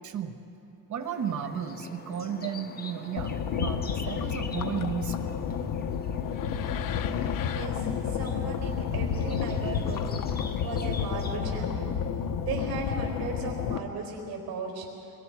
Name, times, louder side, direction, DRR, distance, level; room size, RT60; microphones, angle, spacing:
voice 1, 0.0-0.4 0.9-5.4, right 8 dB, 45° right, 8 dB, 1.1 m, -34 dB
sound 1, 1.0-11.4, left 5 dB, 20° left, 0.8 m, -45 dB
sound 2, 3.2-13.8, left 7 dB, 50° left, 0.9 m, -30 dB
voice 2, 7.5-11.9 12.4-14.9, right 3 dB, 60° right, 1 dB, 4.9 m, -36 dB
25.0 x 23.5 x 4.8 m, 2.7 s
cardioid pair, 175°, 42 cm